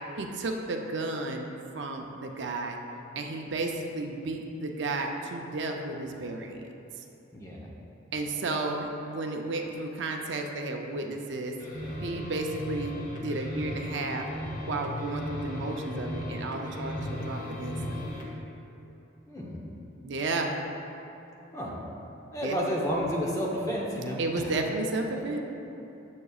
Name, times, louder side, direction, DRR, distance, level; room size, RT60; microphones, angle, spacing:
voice 1, 0.2-1.5 1.7-2.8 3.1-6.7 8.1-11.5 12.0-14.3 14.7-18.1 20.0-20.5 22.4-22.6 24.2-25.4, right 2 dB, 60° right, 2 dB, 0.5 m, -33 dB
voice 2, 7.3-7.7 15.8-16.1 19.3-19.6 21.5-21.7 22.3-24.6 25.1-25.2, equal, 15° left, -4 dB, 0.9 m, -31 dB
sound 1, 11.6-18.3, left 1 dB, 40° left, 1.1 m, -36 dB
9.6 x 7.3 x 2.4 m, 2.9 s
head